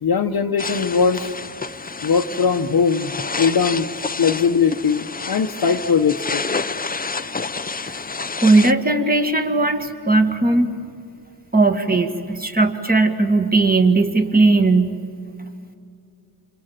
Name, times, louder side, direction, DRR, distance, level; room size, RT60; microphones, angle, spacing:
voice 1, 0.0-1.3 2.0-3.1 3.4-3.9 4.2-6.4, left 6 dB, 60° left, 2 dB, 0.9 m, -20 dB
sound 1, 0.6-8.7, left 4 dB, 20° left, 0.6 m, -29 dB
voice 2, 8.4-10.7 11.5-15.0, right 3 dB, 20° right, 5 dB, 2.0 m, -17 dB
29.0 x 27.5 x 7.5 m, 2.4 s
wide cardioid pair, 140°, 41 cm